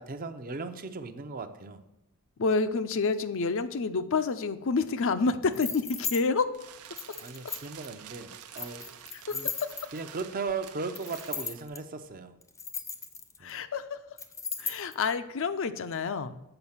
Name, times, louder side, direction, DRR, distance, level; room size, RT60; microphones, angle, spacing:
voice 1, 0.0-1.8 7.2-9.0 9.3-9.5 9.9-12.3 13.4-13.5, right 4 dB, 40° right, 8 dB, 0.6 m, -37 dB
voice 2, 2.4-6.5 9.3-9.4 13.4-14.0 14.6-16.4, left 4 dB, 60° left, 11 dB, 0.5 m, -28 dB
sound 1, 5.5-6.2 7.0-7.9 8.5-10.1 10.9-11.8 12.4-13.5 14.2-14.9, left 5 dB, 15° left, 0.6 m, -36 dB
sound 2, 6.1-11.7, right 9 dB, 85° right, 0.7 m, -49 dB
7.9 x 4.9 x 7.2 m, 0.87 s
head